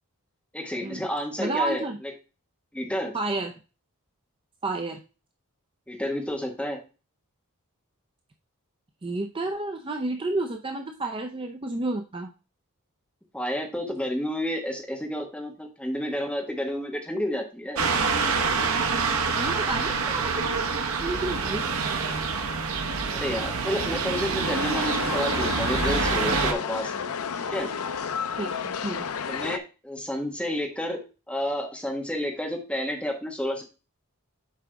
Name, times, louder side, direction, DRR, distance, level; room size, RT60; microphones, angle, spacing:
voice 1, 0.5-2.1 2.7-3.2 5.9-6.8 13.3-17.9 23.1-27.0 27.5-27.8 29.3-33.6, equal, 5° left, 1 dB, 1.4 m, -30 dB
voice 2, 1.4-2.0 3.1-3.6 4.6-5.0 9.0-12.3 19.4-21.7 28.4-29.1, right 2 dB, 25° right, 4 dB, 0.5 m, -31 dB
sound 1, 17.8-26.5, right 4 dB, 70° right, 0.9 m, -26 dB
sound 2, 24.4-29.6, left 6 dB, 75° left, 0.5 m, -31 dB
7.6 x 4.8 x 3.4 m, 0.32 s
head